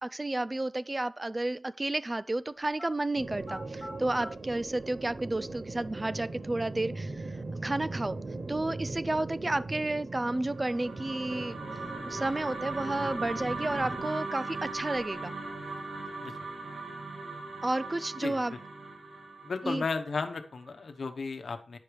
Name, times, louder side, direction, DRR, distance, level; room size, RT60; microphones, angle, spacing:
voice 1, 0.0-8.2 8.5-11.6 12.0-15.3 17.6-18.5 19.6-19.8, right 2 dB, 25° right, 0.4 m, -31 dB
sound 1, 2.6-2.9 3.4-4.3 5.3-5.4 6.1-7.1 11.1-12.1 12.5-12.6 13.2-14.1 14.5-15.3 15.5-16.1, left 1 dB, 15° left, 2.1 m, -49 dB
sound 2, 3.2-14.1, right 3 dB, 45° right, 0.7 m, -40 dB
sound 3, 10.5-20.8, right 3 dB, 65° right, 1.8 m, -39 dB
voice 2, 19.4-21.8, left 4 dB, 65° left, 1.0 m, -34 dB
9.8 x 5.1 x 4.7 m
wide cardioid pair, 120°, 0 cm